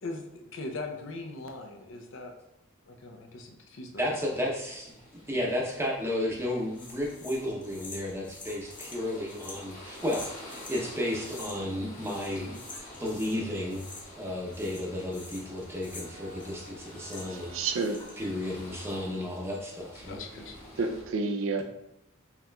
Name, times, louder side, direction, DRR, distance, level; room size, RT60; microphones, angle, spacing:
voice 1, 0.0-2.3 2.9-4.2 20.1-20.6, left 2 dB, 65° left, 3 dB, 0.6 m, -40 dB
sound 1, 4.0-21.0, left 1 dB, 40° left, 1.5 m, -49 dB
voice 2, 4.0-4.9 5.3-12.5 13.0-13.8 14.2-17.6 18.2-20.2, left 1 dB, 10° right, -2 dB, 0.7 m, -33 dB
sound 2, 6.7-10.8 11.2-11.7 12.0-13.4 13.7-14.3 14.5-17.5 17.7-18.3, left 3 dB, 25° left, 0.7 m, -46 dB
sound 3, 14.4-19.3, right 1 dB, 50° right, 0.9 m, -56 dB
voice 3, 17.3-18.2 20.8-21.6, right 4 dB, 70° right, 6 dB, 0.4 m, -30 dB
5.5 x 3.0 x 2.3 m, 0.83 s
head